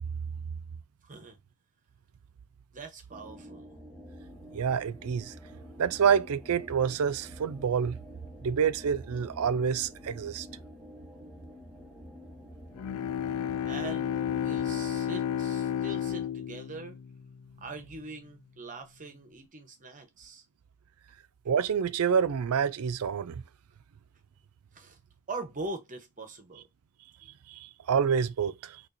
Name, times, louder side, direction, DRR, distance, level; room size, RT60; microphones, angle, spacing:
voice 1, 1.0-1.4 2.7-3.8 13.6-17.0 17.6-20.4 24.7-25.0 25.3-26.7 27.2-27.3, right 3 dB, 35° right, 0.9 m, -42 dB
sound 1, 3.1-15.0, equal, ahead, 1.0 m, -48 dB
voice 2, 4.5-5.3 5.8-8.0 8.4-10.5 21.5-23.4 27.5-28.8, right 7 dB, 70° right, 0.4 m, -27 dB
Bowed string instrument, 12.7-17.8, left 9 dB, 75° left, 0.3 m, -32 dB
4.4 x 2.9 x 2.6 m
head